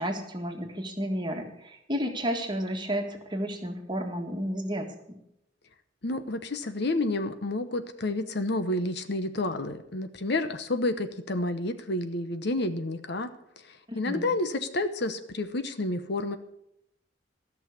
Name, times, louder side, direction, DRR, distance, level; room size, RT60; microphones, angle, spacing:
voice 1, 0.0-5.2 13.9-14.3, equal, 25° right, 3 dB, 1.7 m, -32 dB
voice 2, 6.0-13.3 13.7-16.4, left 2 dB, 60° left, 9 dB, 0.9 m, -30 dB
14.0 x 6.4 x 8.3 m, 0.78 s
head